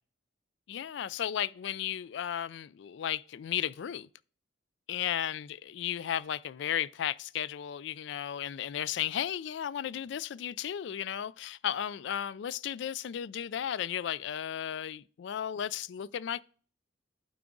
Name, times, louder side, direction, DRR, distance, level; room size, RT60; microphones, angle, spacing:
voice 1, 0.7-4.1 4.9-16.4, left 10 dB, 65° left, 0.3 m, -34 dB
11.5 x 4.8 x 3.8 m
head